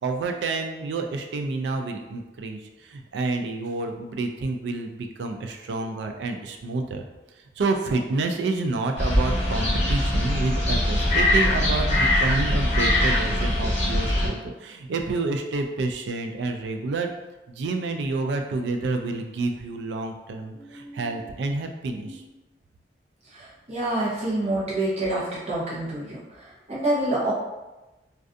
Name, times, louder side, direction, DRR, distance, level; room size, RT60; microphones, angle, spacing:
voice 1, 0.0-7.1 7.6-17.1 17.5-22.2, right 3 dB, 80° right, 5 dB, 0.3 m, -29 dB
sound 1, 9.0-14.3, left 1 dB, 40° left, 0.8 m, -22 dB
voice 2, 20.5-21.2 22.1-22.2 23.2-27.3, right 1 dB, 40° right, -7 dB, 0.7 m, -28 dB
2.4 x 2.3 x 2.4 m, 1.1 s
head